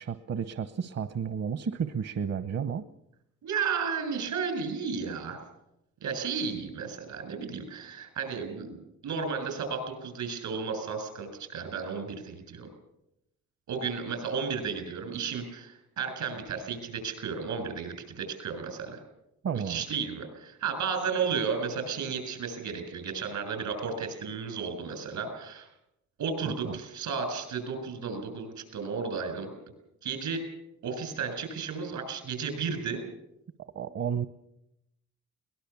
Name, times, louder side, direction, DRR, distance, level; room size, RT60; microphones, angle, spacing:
voice 1, 0.0-2.8 19.4-19.8 26.6-26.8 33.7-34.3, right 7 dB, 60° right, 11 dB, 1.0 m, -32 dB
voice 2, 3.4-5.4 6.0-12.7 13.7-19.0 19.5-25.7 26.2-29.6 30.0-30.5 30.8-33.0, right 5 dB, 85° right, 7 dB, 6.8 m, -33 dB
23.0 x 19.5 x 7.1 m, 0.84 s
cardioid pair, 75°, 29 cm